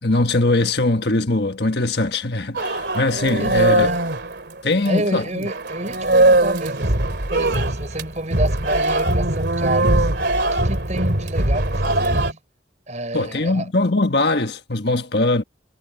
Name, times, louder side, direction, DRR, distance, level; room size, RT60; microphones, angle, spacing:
voice 1, 0.0-3.9 4.6-5.5 13.1-15.4, left 2 dB, 60° left, 1.5 m, -21 dB
sound 1, 2.5-5.1 5.4-12.3, right 2 dB, 65° right, 2.7 m, -20 dB
voice 2, 3.2-4.0 4.8-10.1 10.5-12.4 12.9-13.7, right 1 dB, 40° right, 5.6 m, -29 dB
head